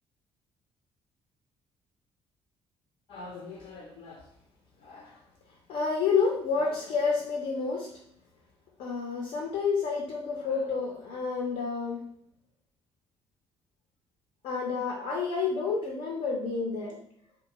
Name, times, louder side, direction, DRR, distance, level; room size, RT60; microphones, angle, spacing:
voice 1, 3.1-4.2 4.8-5.2 5.7-7.9 8.8-12.0 14.4-17.0, left 5 dB, 60° left, -1 dB, 0.5 m, -30 dB
2.4 x 2.2 x 2.9 m, 0.67 s
figure-of-eight pair, 45°, 13 cm